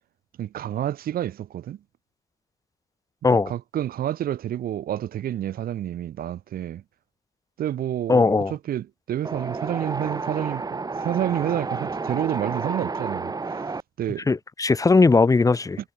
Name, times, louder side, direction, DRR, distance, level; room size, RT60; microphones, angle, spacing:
voice 1, 0.4-1.8 3.5-6.8 7.6-14.3, right 11 dB, 60° right, 4.4 m, -29 dB
voice 2, 8.1-8.5 14.3-15.8, left 3 dB, 20° left, 2.9 m, -18 dB
Wind, 9.2-13.8, right 4 dB, 20° right, 7.6 m, -30 dB
cardioid pair, 110°, 17 cm